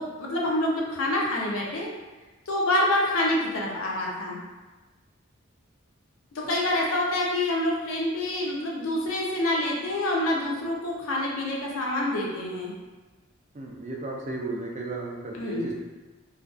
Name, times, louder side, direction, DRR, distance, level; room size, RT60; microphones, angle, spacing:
voice 1, 0.0-1.9 2.5-4.4 6.3-12.7 15.3-15.7, left 1 dB, 75° left, -3 dB, 0.5 m, -27 dB
voice 2, 13.5-15.7, right 2 dB, 35° right, -1 dB, 0.4 m, -34 dB
2.4 x 2.2 x 2.4 m, 1.2 s
head